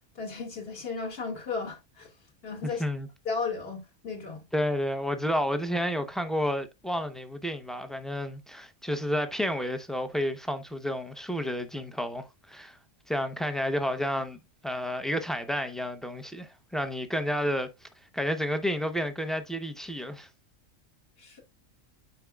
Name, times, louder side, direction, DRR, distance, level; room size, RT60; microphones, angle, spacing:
voice 1, 0.2-2.1 2.4-2.8 3.3-4.4 21.2-21.4, left 4 dB, 50° left, 2.2 m, -35 dB
voice 2, 2.6-3.1 4.5-12.8 13.1-17.9 18.1-20.3, equal, ahead, 0.4 m, -31 dB
9.5 x 4.9 x 2.3 m
omnidirectional pair, 1.3 m